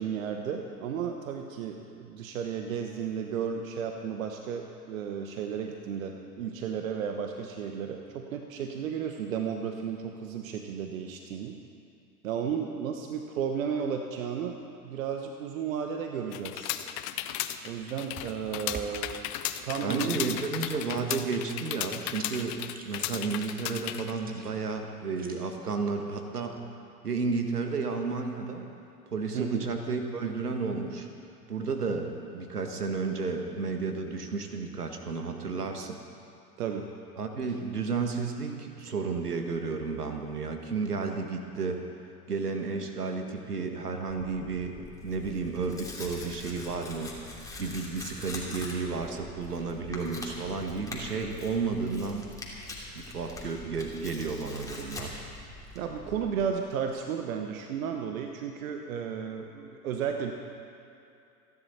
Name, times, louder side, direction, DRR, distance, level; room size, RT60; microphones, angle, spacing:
voice 1, 0.0-11.6 12.2-14.6 14.8-16.8 17.6-19.2 19.6-20.4 29.3-29.6 36.6-36.9 55.7-60.3, right 7 dB, 60° right, 4 dB, 1.2 m, -33 dB
sound 1, 16.3-24.1, left 13 dB, 40° left, 0.8 m, -35 dB
sound 2, 18.0-25.4, right 3 dB, 20° right, 1.7 m, -49 dB
voice 2, 19.8-22.6 22.8-26.6 27.0-28.7 29.1-31.1 31.5-36.0 37.2-41.8 42.3-47.1 47.6-52.3 52.9-55.2, right 4 dB, 75° right, 5 dB, 1.7 m, -32 dB
Tearing, 44.1-56.4, left 2 dB, 5° left, 3.1 m, -43 dB
29.0 x 11.0 x 4.3 m, 2.6 s
figure-of-eight pair, 80°, 46 cm